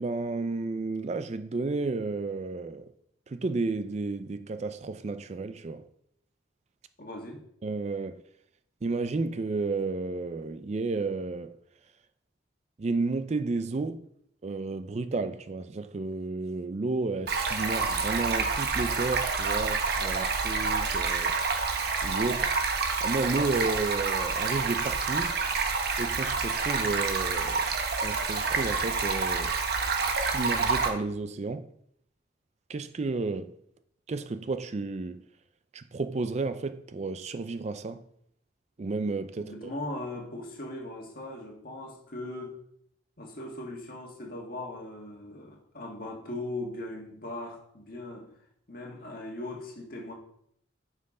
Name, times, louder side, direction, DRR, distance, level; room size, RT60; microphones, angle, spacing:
voice 1, 0.0-2.9 3.3-5.8 7.6-8.2 8.8-11.5 12.8-14.1 14.4-21.4 22.0-22.5 23.0-25.4 26.0-27.6 28.0-29.6 30.2-31.7 32.7-33.5 34.1-35.2 35.7-38.0 38.8-39.7, right 3 dB, 35° right, 0.4 m, -32 dB
voice 2, 7.0-7.4 39.3-42.6 43.2-48.3 48.7-50.1, left 2 dB, 50° left, 1.7 m, -39 dB
Stream, 17.3-30.9, right 4 dB, 55° right, 1.0 m, -28 dB
9.4 x 5.8 x 3.8 m
head